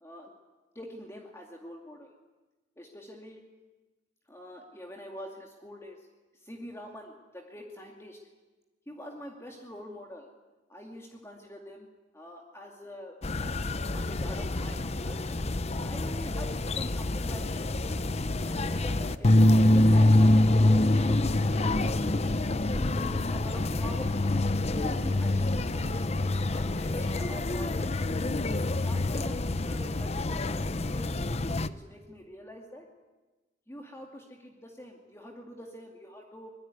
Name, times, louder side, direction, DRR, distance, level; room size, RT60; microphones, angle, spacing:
voice 1, 0.0-0.3 0.7-2.1 2.8-3.4 4.3-6.1 6.3-8.2 8.9-10.3 10.7-11.9 12.1-15.4 15.8-18.0 18.4-22.0 22.7-26.1 26.5-28.0 28.6-31.3 31.6-32.9 33.7-36.5, equal, 15° left, 1 dB, 2.4 m, -44 dB
sound 1, 13.2-31.7, left 1 dB, 35° left, 0.8 m, -26 dB
sound 2, 21.6-23.2 23.5-26.2, equal, 25° right, 2.1 m, -44 dB
24.5 x 22.0 x 9.7 m, 1.2 s
head